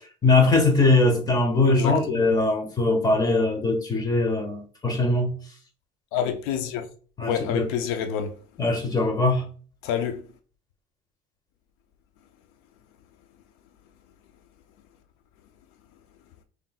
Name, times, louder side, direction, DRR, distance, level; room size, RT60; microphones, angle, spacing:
voice 1, 0.2-5.4 7.2-7.7 8.6-9.5, left 2 dB, 20° left, 1.3 m, -21 dB
voice 2, 1.6-2.3 6.1-6.9 7.2-8.3 9.8-10.2, left 8 dB, 80° left, 0.6 m, -28 dB
5.5 x 3.3 x 2.3 m
cardioid pair, 135°, 21 cm